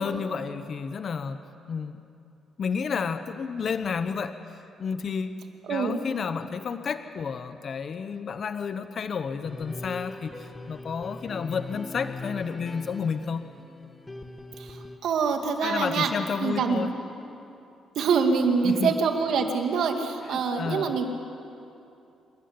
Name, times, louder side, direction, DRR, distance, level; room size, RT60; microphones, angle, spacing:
voice 1, 0.0-1.4 1.7-2.0 2.6-4.4 4.8-5.3 5.7-13.5 15.6-16.9 18.6-18.9 20.3-21.0, left 6 dB, 50° left, 10 dB, 1.0 m, -31 dB
sound 1, 9.4-15.0, left 2 dB, 15° left, 1.7 m, -41 dB
voice 2, 15.0-16.1 16.4-17.1 18.0-21.0, right 5 dB, 70° right, 4 dB, 2.5 m, -25 dB
27.0 x 13.5 x 9.7 m, 2.7 s
cardioid pair, 90°, 0 cm